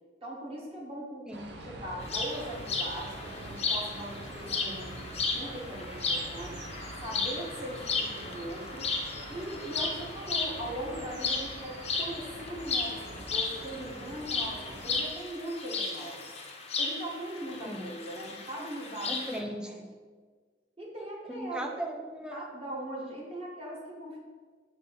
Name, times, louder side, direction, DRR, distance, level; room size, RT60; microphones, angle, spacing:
voice 1, 0.2-1.2 1.6-6.6 7.0-8.9 9.3-16.3 16.8-19.4 20.8-21.7 22.3-24.2, right 1 dB, 30° right, -4 dB, 1.2 m, -40 dB
voice 2, 1.3-1.6 17.6-17.9 19.1-19.9 21.3-22.5, right 1 dB, 5° right, 3 dB, 0.4 m, -38 dB
sound 1, 1.3-15.1, right 1 dB, 65° right, 0.7 m, -44 dB
sound 2, 2.0-19.4, left 4 dB, 35° left, 0.7 m, -35 dB
6.4 x 2.7 x 5.5 m, 1.5 s
head